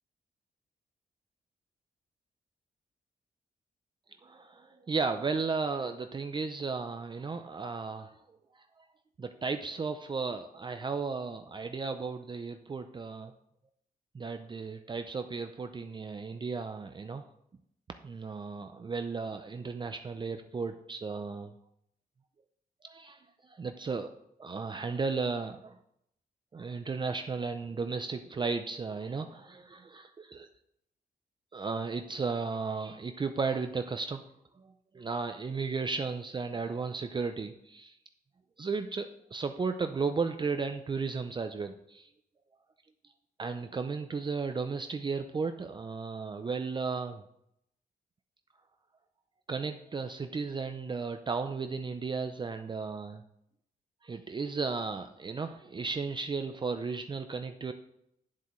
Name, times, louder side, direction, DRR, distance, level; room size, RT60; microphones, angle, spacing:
voice 1, 4.2-8.1 8.6-8.7 9.2-13.3 14.1-17.2 18.0-21.5 22.8-24.1 24.4-25.8 26.5-30.5 31.5-34.2 34.6-38.0 38.6-42.1 43.4-47.2 49.5-53.2 54.0-57.7, right 4 dB, 30° right, 7 dB, 0.5 m, -34 dB
9.7 x 7.8 x 3.1 m, 0.76 s
cardioid pair, 100°, 16 cm